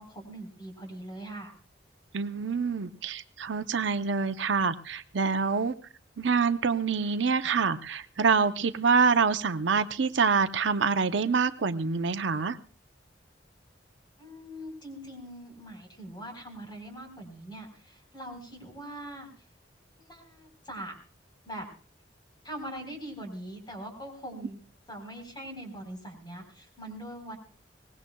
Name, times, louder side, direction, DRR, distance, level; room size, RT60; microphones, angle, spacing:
voice 1, 0.0-1.5 14.2-19.3 20.0-20.9 21.5-21.7 22.4-24.6 24.9-27.4, right 1 dB, 25° left, 2 dB, 3.9 m, -42 dB
voice 2, 2.1-5.8 6.2-12.6, right 5 dB, 75° right, 11 dB, 0.7 m, -26 dB
22.5 x 19.0 x 2.3 m, 0.40 s
head